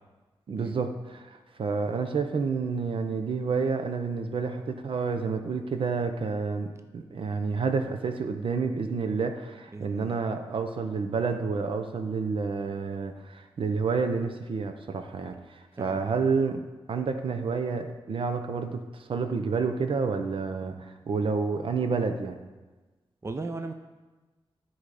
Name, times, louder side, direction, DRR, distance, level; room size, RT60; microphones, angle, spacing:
voice 1, 0.5-22.4, right 4 dB, 65° right, 7 dB, 0.7 m, -29 dB
voice 2, 9.7-10.2 15.8-16.1 23.2-23.7, right 3 dB, 30° right, 6 dB, 0.6 m, -37 dB
12.0 x 4.0 x 4.9 m, 1.2 s
cardioid pair, 80°, 10 cm